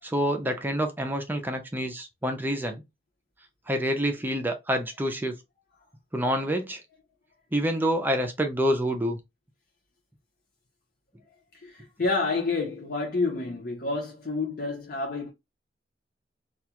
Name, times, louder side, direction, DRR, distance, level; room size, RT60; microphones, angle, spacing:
voice 1, 0.0-2.8 3.7-5.4 6.1-6.8 7.5-9.2, equal, 10° right, 0.5 m, -27 dB
voice 2, 11.6-15.3, left 3 dB, 55° left, 0.7 m, -29 dB
2.4 x 2.2 x 2.9 m
head